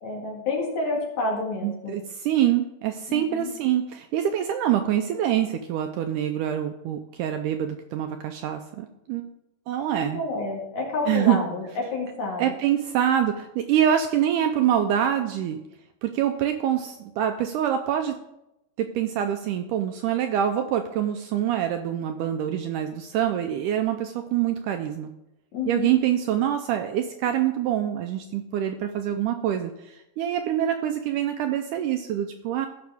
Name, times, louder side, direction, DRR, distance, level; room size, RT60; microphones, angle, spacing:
voice 1, 0.0-1.9 3.1-3.5 10.0-12.5 25.5-25.9, left 3 dB, 55° left, -1 dB, 3.2 m, -29 dB
voice 2, 1.6-9.3 9.7-10.2 11.1-11.4 12.4-15.6 16.0-18.2 18.8-25.1 25.7-32.7, right 10 dB, 80° right, 6 dB, 1.9 m, -25 dB
16.0 x 6.0 x 3.5 m, 0.88 s
omnidirectional pair, 4.1 m